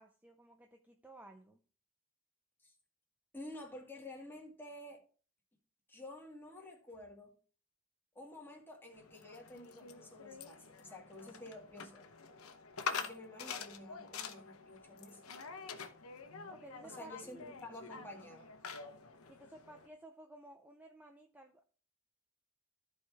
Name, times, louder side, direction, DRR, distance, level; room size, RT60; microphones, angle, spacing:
voice 1, 0.0-1.6 16.5-17.5 19.3-21.6, right 2 dB, 10° right, 0.6 m, -56 dB
voice 2, 3.3-5.0 5.9-7.4 8.1-12.1 12.9-15.2 16.8-18.5, left 1 dB, 10° left, 2.1 m, -51 dB
sound 1, 8.9-19.9, left 5 dB, 80° left, 0.9 m, -46 dB
14.0 x 4.7 x 3.4 m
head